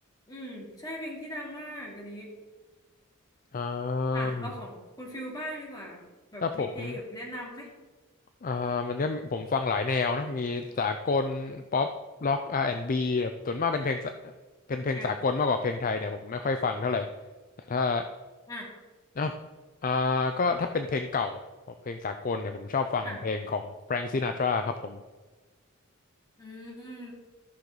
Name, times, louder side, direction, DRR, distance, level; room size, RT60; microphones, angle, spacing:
voice 1, 0.3-2.3 4.1-6.0 6.3-7.7 14.9-15.1 18.5-18.7 23.0-23.2 26.4-27.1, equal, 20° left, -3 dB, 2.6 m, -39 dB
voice 2, 3.5-4.5 6.4-7.0 8.4-11.9 12.2-14.1 14.7-17.1 17.7-18.0 19.2-19.3 19.8-21.4 21.9-23.6 23.9-25.0, left 4 dB, 40° left, 7 dB, 0.5 m, -28 dB
13.5 x 6.4 x 4.0 m, 1.3 s
head